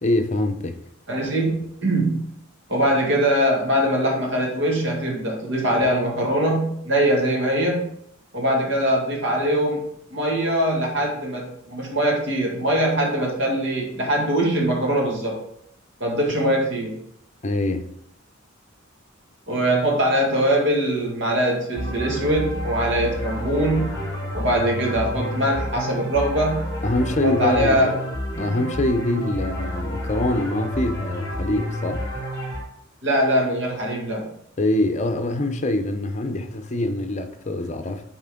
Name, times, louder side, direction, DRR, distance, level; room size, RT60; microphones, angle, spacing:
voice 1, 0.0-0.8 17.4-17.9 26.8-27.9 28.4-32.1 34.6-38.0, left 1 dB, 35° left, 0.7 m, -24 dB
voice 2, 1.1-2.3 2.7-7.9 8.3-9.8 10.1-15.4 16.0-17.0 19.5-24.0 24.3-26.7 27.2-28.1 28.4-28.5 33.0-34.3, right 1 dB, 65° right, 2.0 m, -22 dB
sound 1, 21.8-32.6, equal, 15° left, 1.8 m, -30 dB
8.0 x 4.3 x 3.7 m
head